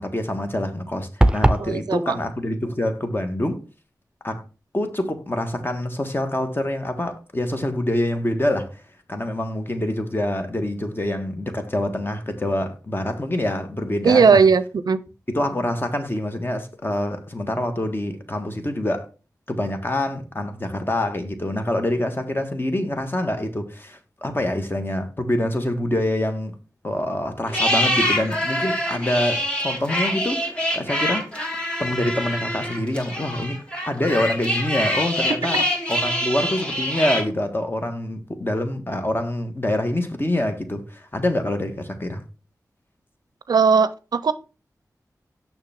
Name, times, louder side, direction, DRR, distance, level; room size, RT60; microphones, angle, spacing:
voice 1, 0.0-3.6 4.2-4.4 4.7-8.8 9.1-14.4 15.3-19.1 19.5-26.6 26.8-31.3 31.8-35.6 35.9-42.2, left 1 dB, 30° left, 1.5 m, -26 dB
sound 1, 1.2-1.7, right 1 dB, 15° right, 0.7 m, -17 dB
voice 2, 1.6-2.2 14.0-15.0 43.5-44.3, right 5 dB, 75° right, 0.4 m, -17 dB
sound 2, 27.5-37.2, equal, 15° left, 2.6 m, -25 dB
6.6 x 6.0 x 3.6 m
cardioid pair, 40°, 7 cm